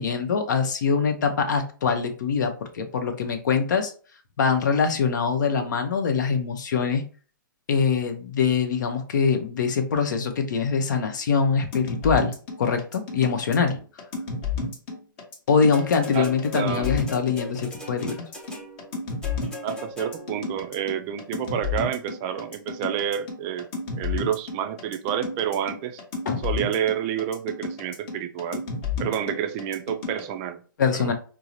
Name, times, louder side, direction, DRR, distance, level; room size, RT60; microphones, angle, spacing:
voice 1, 0.0-3.9 4.4-7.1 7.7-13.8 15.5-18.2 26.3-26.4 30.8-31.1, left 5 dB, 65° left, 6 dB, 0.8 m, -23 dB
sound 1, 11.7-30.2, left 4 dB, 35° left, 1.1 m, -31 dB
sound 2, 15.7-20.5 21.4-21.5, left 2 dB, 5° left, 0.7 m, -39 dB
voice 2, 16.5-17.0 19.6-23.7 24.0-26.0 26.4-28.6 29.0-30.6 30.9-31.1, right 9 dB, 30° right, 8 dB, 0.4 m, -29 dB
4.6 x 2.0 x 2.7 m, 0.39 s
hypercardioid pair, 140°, 11 cm